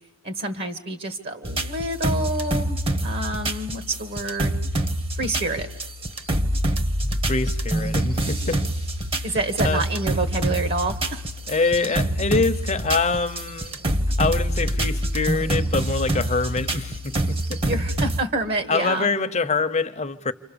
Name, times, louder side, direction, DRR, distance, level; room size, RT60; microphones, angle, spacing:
voice 1, 0.2-2.8 3.0-4.6 5.2-5.7 9.2-11.2 17.6-19.1, right 2 dB, 50° right, 1.5 m, -28 dB
sound 1, 1.4-18.2, right 1 dB, 25° right, 1.1 m, -26 dB
voice 2, 7.3-8.6 9.2-9.4 9.6-9.8 11.5-13.8 14.2-17.6 18.7-20.3, left 4 dB, 30° left, 0.9 m, -25 dB
29.0 x 26.0 x 7.0 m
head